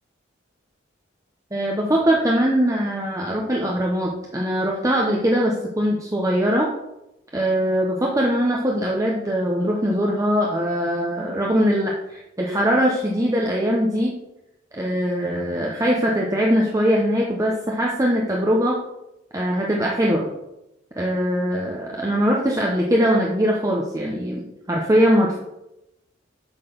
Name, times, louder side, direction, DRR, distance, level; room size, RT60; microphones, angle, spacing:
voice 1, 1.5-6.7 7.3-14.1 14.7-18.8 19.3-20.3 21.0-25.4, equal, 15° right, -2 dB, 0.9 m, -21 dB
8.3 x 4.0 x 6.8 m, 0.89 s
head